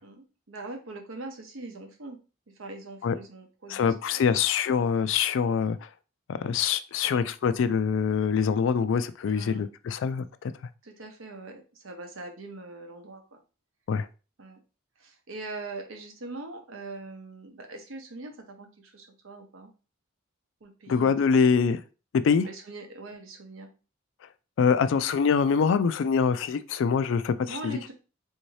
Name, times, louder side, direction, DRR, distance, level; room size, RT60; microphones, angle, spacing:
voice 1, 0.0-2.2 2.6-4.2 4.8-4.9 9.3-9.6 10.8-13.4 14.4-14.6 15.0-19.7 20.6-21.1 21.4-21.5 22.4-23.7 27.5-27.9, right 2 dB, 70° right, 4 dB, 0.8 m, -42 dB
voice 2, 3.7-5.9 6.3-10.5 13.9-14.1 20.9-21.8 22.1-22.5 24.6-27.8, left 6 dB, 65° left, 13 dB, 0.3 m, -24 dB
3.5 x 2.7 x 3.1 m, 0.33 s
head